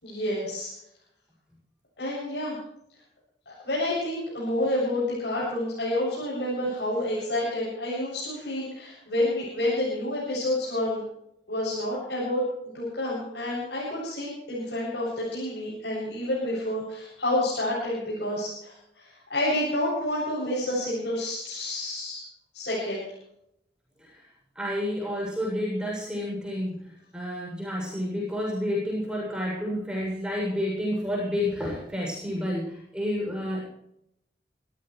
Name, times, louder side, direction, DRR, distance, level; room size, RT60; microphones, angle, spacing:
voice 1, 0.0-0.7 2.0-2.6 3.5-11.0 11.5-12.4 12.7-22.2 22.5-23.1, left 1 dB, 75° left, -6 dB, 7.9 m, -29 dB
voice 2, 24.6-26.9 27.1-33.6, left 1 dB, 5° right, -3 dB, 7.3 m, -30 dB
24.5 x 15.0 x 3.3 m, 0.76 s
head